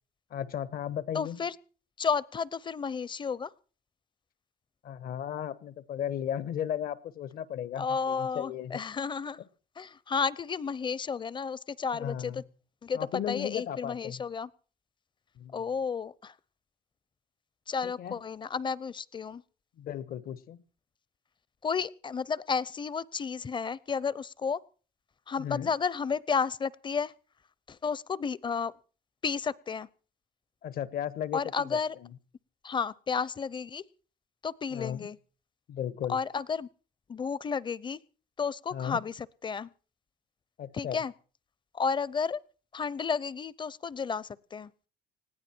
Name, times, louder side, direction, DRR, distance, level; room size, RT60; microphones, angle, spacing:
voice 1, 0.3-1.4 4.8-8.8 11.9-12.4 12.9-14.2 15.3-15.6 17.8-18.1 19.8-20.6 25.4-25.7 30.6-32.1 34.7-35.1 35.7-36.2 38.7-39.0 40.6-41.0, left 9 dB, 60° left, 16 dB, 1.3 m, -35 dB
voice 2, 1.1-1.5 2.0-3.5 7.8-9.4 9.8-12.4 12.8-13.0 13.3-14.5 15.5-16.3 17.7-19.4 21.6-24.6 25.3-27.1 27.7-28.7 29.2-29.9 31.3-31.9 32.6-33.8 34.4-35.2 36.1-36.7 37.1-38.0 38.4-39.7 40.7-41.1 41.7-42.4 42.7-44.7, left 5 dB, 30° left, 22 dB, 0.7 m, -32 dB
20.0 x 15.5 x 4.5 m, 0.41 s
cardioid pair, 110°, 17 cm